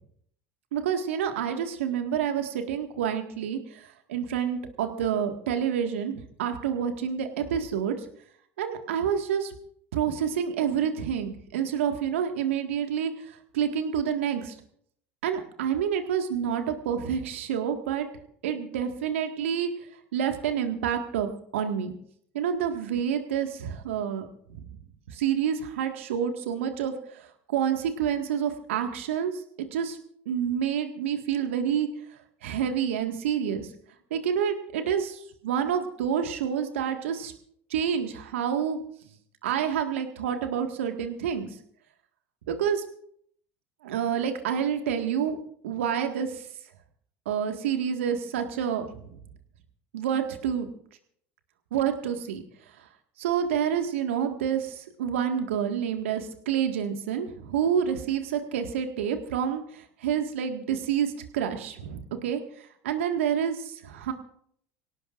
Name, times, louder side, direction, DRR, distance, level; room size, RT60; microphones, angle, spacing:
voice 1, 0.7-8.0 8.6-9.5 9.9-14.5 15.2-18.1 18.4-19.7 20.1-21.9 22.3-24.6 25.1-29.3 29.7-30.0 30.3-31.9 32.4-33.7 34.1-37.3 37.7-38.8 39.4-41.5 42.5-42.8 43.8-45.4 45.6-46.5 47.3-49.1 49.9-50.7 51.7-52.4 53.2-64.1, right 8 dB, 80° right, 6 dB, 1.8 m, -28 dB
25.0 x 17.5 x 2.6 m, 0.65 s
hypercardioid pair, 75°, 7 cm